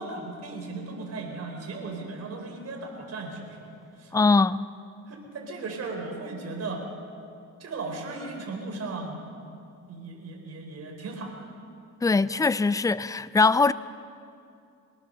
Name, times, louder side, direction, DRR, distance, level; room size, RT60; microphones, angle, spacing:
voice 1, 0.0-3.7 4.0-4.2 5.1-6.8 7.6-9.3 9.9-11.5, right 3 dB, 55° right, 4.3 m, -36 dB
voice 2, 4.1-4.7 12.0-13.7, left 4 dB, 10° left, 0.5 m, -21 dB
23.0 x 18.5 x 6.8 m
cardioid pair, 90°, 30 cm